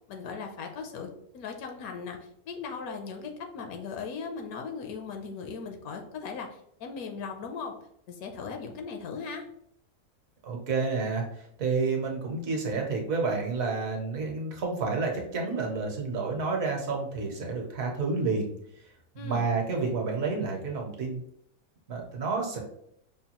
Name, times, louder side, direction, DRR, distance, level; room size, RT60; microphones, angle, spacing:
voice 1, 0.1-7.8 8.1-9.5 19.2-19.5, left 5 dB, 75° left, 3 dB, 1.1 m, -38 dB
voice 2, 10.4-18.5 18.8-21.2 21.9-22.6, right 4 dB, 65° right, 1 dB, 1.2 m, -30 dB
5.4 x 2.3 x 2.8 m, 0.72 s
omnidirectional pair, 1.6 m